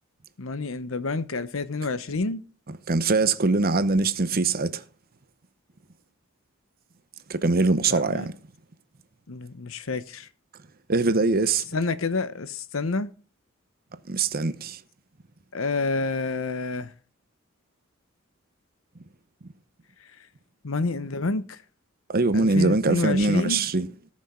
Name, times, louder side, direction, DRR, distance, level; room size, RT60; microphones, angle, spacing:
voice 1, 0.4-2.4 7.9-8.3 9.3-10.3 11.7-13.1 15.5-16.9 20.6-21.6 22.3-23.6, left 3 dB, 75° left, 0.9 m, -28 dB
voice 2, 2.9-4.8 7.3-8.3 10.9-11.6 14.1-14.8 22.1-23.9, right 3 dB, 45° right, 0.8 m, -22 dB
18.0 x 6.3 x 3.7 m
head